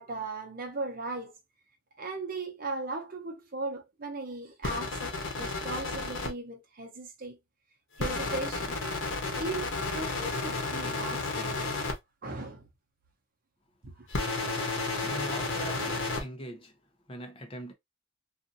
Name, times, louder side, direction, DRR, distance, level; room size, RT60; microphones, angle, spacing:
voice 1, 0.0-1.4 2.0-7.4 8.0-8.8 9.4-11.6 12.2-12.7 13.8-13.9, right 3 dB, 45° right, 0.8 m, -37 dB
sound 1, 4.6-6.3 8.0-11.9 14.1-16.2, left 3 dB, 80° left, 0.9 m, -32 dB
voice 2, 14.9-17.7, equal, 25° left, 0.7 m, -42 dB
2.7 x 2.5 x 2.5 m
head